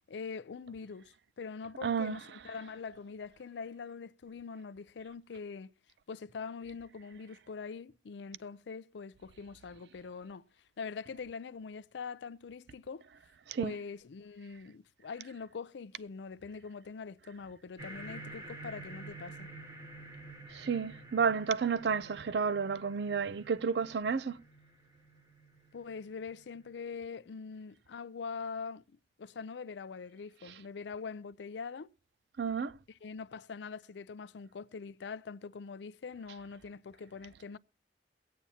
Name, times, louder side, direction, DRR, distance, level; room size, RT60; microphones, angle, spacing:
voice 1, 0.1-5.7 6.1-10.4 10.8-13.0 13.6-19.5 25.7-28.8 29.2-31.9 33.0-37.6, left 5 dB, 80° left, 0.4 m, -43 dB
voice 2, 1.8-2.2 13.5-13.7 20.5-24.4 32.4-32.7, right 6 dB, 65° right, 0.4 m, -31 dB
sound 1, 17.8-26.7, right 2 dB, 25° right, 2.6 m, -50 dB
23.0 x 8.4 x 2.8 m
head